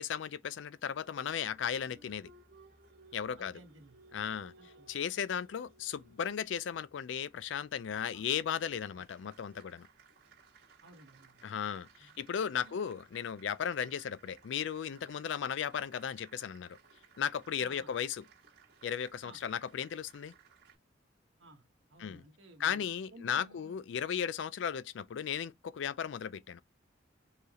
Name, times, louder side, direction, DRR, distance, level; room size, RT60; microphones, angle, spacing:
voice 1, 0.0-2.3 3.1-3.5 4.1-4.5 4.9-9.9 11.4-16.8 17.2-18.2 18.8-20.3 22.0-22.2 22.6-26.6, left 8 dB, 70° left, 0.4 m, -36 dB
Applause, 0.8-20.8, right 4 dB, 60° right, 1.8 m, -62 dB
voice 2, 3.4-4.0 4.6-4.9 8.1-8.2 8.9-9.1 10.8-11.5 12.0-12.2 12.6-12.8 17.6-17.9 19.2-19.4 21.4-22.9 23.1-23.8, right 1 dB, 80° right, 1.2 m, -56 dB
4.5 x 3.3 x 2.9 m
head